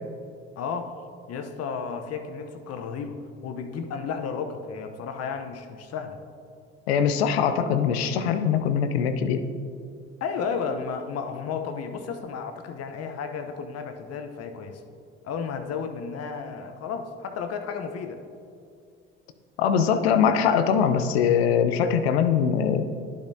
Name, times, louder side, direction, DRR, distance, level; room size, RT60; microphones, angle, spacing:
voice 1, 0.6-0.9 1.3-6.2 10.2-14.8 15.2-18.2, left 6 dB, 55° left, 7 dB, 0.9 m, -33 dB
voice 2, 6.9-9.4 19.6-22.8, left 7 dB, 85° left, 9 dB, 0.6 m, -22 dB
11.5 x 7.1 x 2.7 m, 2.4 s
hypercardioid pair, 60°, 31 cm